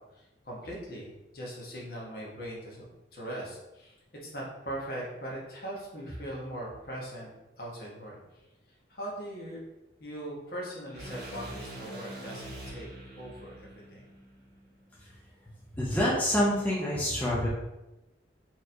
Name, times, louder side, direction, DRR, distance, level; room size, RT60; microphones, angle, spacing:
voice 1, 0.1-2.8 3.1-3.9 4.2-7.3 7.6-8.2 8.9-9.6 10.0-12.9 13.2-14.0, right 1 dB, 55° left, -4 dB, 1.1 m, -40 dB
sound 1, 10.9-15.1, right 1 dB, 60° right, 1.4 m, -44 dB
voice 2, 15.7-17.5, equal, 10° left, -6 dB, 0.5 m, -27 dB
4.2 x 3.0 x 2.6 m, 0.98 s
head